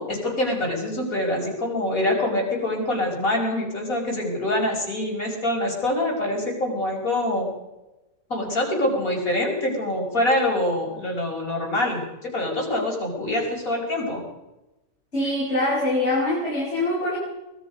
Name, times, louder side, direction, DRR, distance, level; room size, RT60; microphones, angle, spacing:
voice 1, 0.0-7.5 8.3-14.2, left 1 dB, 90° left, 0 dB, 6.0 m, -25 dB
voice 2, 15.1-17.2, left 1 dB, 55° left, -6 dB, 6.8 m, -23 dB
24.5 x 20.5 x 5.3 m, 1.0 s
omnidirectional pair, 1.4 m